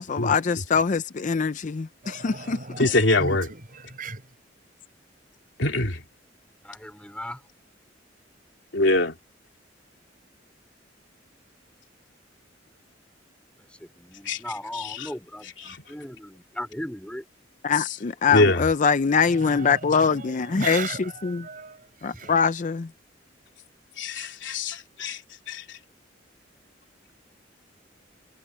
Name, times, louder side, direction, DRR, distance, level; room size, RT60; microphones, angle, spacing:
voice 1, 0.0-2.6 17.6-21.5 22.0-22.9, left 5 dB, 40° left, 0.5 m, -23 dB
voice 2, 2.0-2.9 3.2-4.2 19.2-22.3, right 4 dB, 45° right, 6.8 m, -37 dB
voice 3, 2.8-3.5 5.6-6.0 8.7-9.2 14.2-14.4 14.7-15.1 15.6-15.8 18.3-18.6 24.0-25.2 25.5-25.8, left 2 dB, 75° left, 3.0 m, -23 dB
voice 4, 6.6-7.4 13.8-17.2, left 1 dB, 5° left, 4.7 m, -37 dB
head